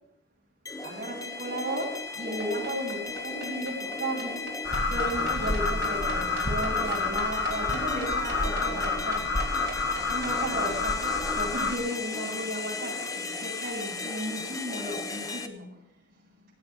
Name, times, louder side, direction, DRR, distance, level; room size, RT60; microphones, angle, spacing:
sound 1, 0.7-15.5, left 4 dB, 15° left, 0.9 m, -36 dB
voice 1, 0.8-4.5 4.9-9.4 10.1-15.8, right 1 dB, 45° right, -5 dB, 7.1 m, -35 dB
sound 2, 2.4-10.3, right 4 dB, 60° right, 4.3 m, -41 dB
sound 3, 4.6-11.8, left 3 dB, 50° left, 2.0 m, -29 dB
17.5 x 8.6 x 8.4 m, 0.81 s
head